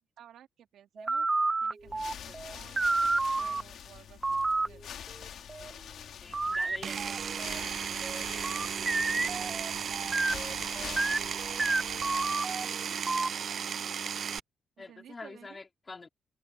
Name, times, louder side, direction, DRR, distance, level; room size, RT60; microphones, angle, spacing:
voice 1, 0.2-1.3 1.6-2.8 3.1-4.8 8.9-9.5 14.8-15.6, right 10 dB, 80° right, 3.5 m, -55 dB
sound 1, 1.0-3.6 4.2-4.7 5.1-5.7 6.3-7.6 8.0-13.3, right 3 dB, 20° right, 1.4 m, -31 dB
sound 2, 1.8-12.5, left 9 dB, 75° left, 2.4 m, -46 dB
voice 2, 6.2-7.4 10.6-10.8 14.8-16.1, left 3 dB, 25° left, 4.1 m, -47 dB
Power tool, 6.8-14.4, right 7 dB, 50° right, 0.3 m, -35 dB
open air
cardioid pair, 130°, 0 cm